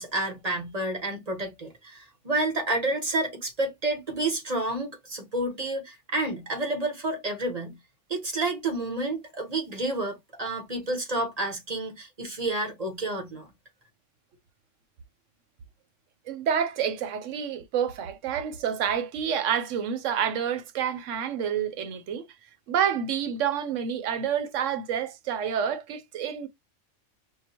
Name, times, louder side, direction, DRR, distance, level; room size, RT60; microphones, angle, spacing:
voice 1, 0.0-7.7 8.1-13.5, right 2 dB, 35° right, 1.3 m, -30 dB
voice 2, 16.3-22.2 22.7-26.5, right 8 dB, 80° right, 1.0 m, -28 dB
4.7 x 2.2 x 2.8 m
omnidirectional pair, 1.3 m